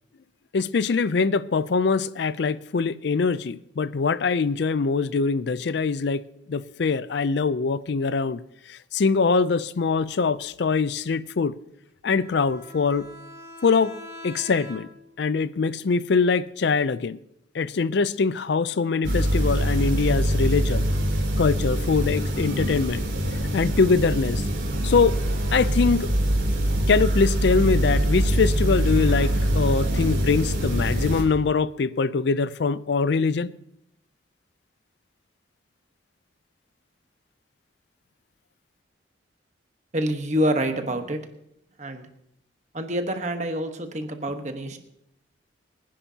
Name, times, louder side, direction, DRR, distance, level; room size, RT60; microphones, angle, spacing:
voice 1, 0.5-8.4 8.7-11.6 12.0-13.1 13.6-13.9 14.2-14.9 15.2-17.2 17.5-20.9 21.4-23.0 23.5-24.4 24.8-25.2 25.5-26.1 26.9-33.5, left 4 dB, 60° left, 0.4 m, -23 dB
Bowed string instrument, 12.2-15.2, left 1 dB, 15° right, 4.4 m, -43 dB
sound 1, 19.0-31.2, right 1 dB, 75° right, 3.3 m, -24 dB
voice 2, 39.9-41.2 41.8-42.1 42.7-44.8, equal, 35° right, 1.2 m, -27 dB
24.0 x 10.5 x 2.8 m
head